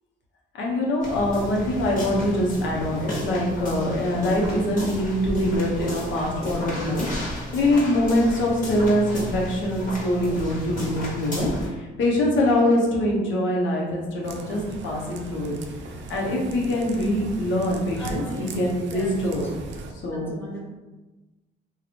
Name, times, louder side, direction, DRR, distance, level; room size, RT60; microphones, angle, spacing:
voice 1, 0.5-15.5 16.1-19.5 20.0-20.3, left 1 dB, 75° left, -3 dB, 1.0 m, -24 dB
sound 1, 1.0-11.7, equal, 40° left, 1.3 m, -33 dB
sound 2, 14.2-19.9, right 2 dB, 65° right, 0.5 m, -38 dB
voice 2, 18.0-19.2 20.1-20.6, equal, 10° left, -3 dB, 0.8 m, -37 dB
2.9 x 2.5 x 4.2 m, 1.2 s
cardioid pair, 90°, 20 cm